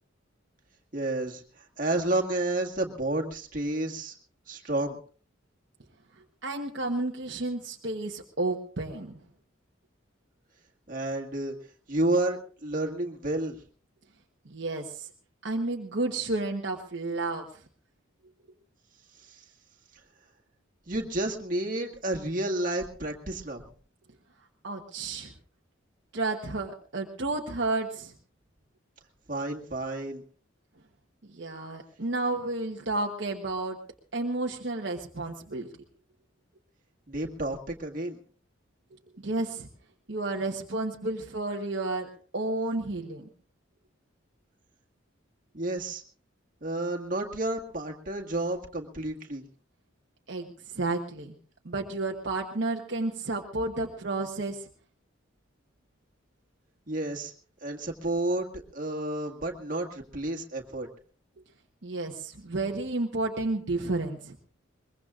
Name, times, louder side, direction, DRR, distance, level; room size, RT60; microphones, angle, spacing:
voice 1, 0.9-4.1 4.5-5.0 10.9-11.5 11.9-13.6 19.3-19.4 20.9-23.7 29.3-30.2 37.1-38.2 45.5-46.0 46.6-49.4 56.9-57.3 57.6-60.9, right 2 dB, 45° right, 2 dB, 1.9 m, -31 dB
voice 2, 6.4-9.2 14.5-15.1 15.4-17.5 24.6-25.3 26.1-28.1 31.3-33.8 34.1-35.7 39.2-39.7 40.1-42.1 42.3-43.3 50.3-51.3 51.6-54.7 61.8-64.3, right 2 dB, 60° right, 1 dB, 1.1 m, -31 dB
22.5 x 21.5 x 2.5 m, 0.43 s
head